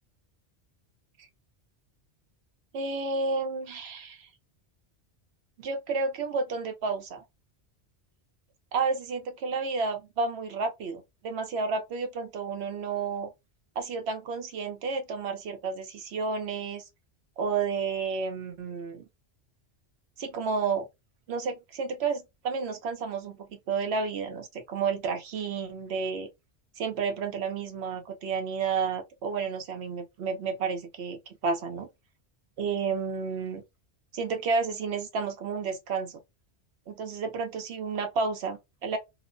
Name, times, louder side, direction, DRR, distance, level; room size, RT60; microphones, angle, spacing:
voice 1, 2.7-4.3 5.6-7.2 8.7-13.3 13.8-16.8 17.4-19.0 20.2-20.9 21.3-26.3 26.8-31.9 32.6-33.6 34.1-36.2 36.9-39.0, right 4 dB, 70° right, 0.9 m, -31 dB
2.9 x 2.1 x 2.5 m
omnidirectional pair, 1.2 m